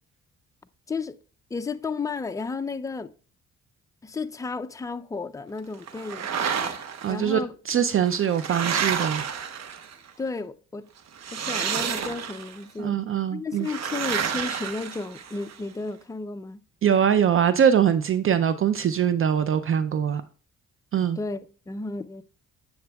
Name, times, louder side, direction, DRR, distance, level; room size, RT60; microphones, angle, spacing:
voice 1, 1.5-3.1 4.0-6.3 7.1-7.5 10.2-10.9 11.3-13.0 13.3-16.6 21.2-22.2, left 4 dB, 10° left, 0.4 m, -33 dB
sound 1, 5.9-7.1 7.9-10.1 11.2-12.6 13.6-15.5, right 7 dB, 60° right, 1.1 m, -30 dB
voice 2, 7.0-7.4 7.7-9.2 12.8-13.7 16.8-20.2 20.9-21.2, right 8 dB, 45° right, 0.5 m, -22 dB
9.4 x 7.8 x 2.3 m
cardioid pair, 90°, 30 cm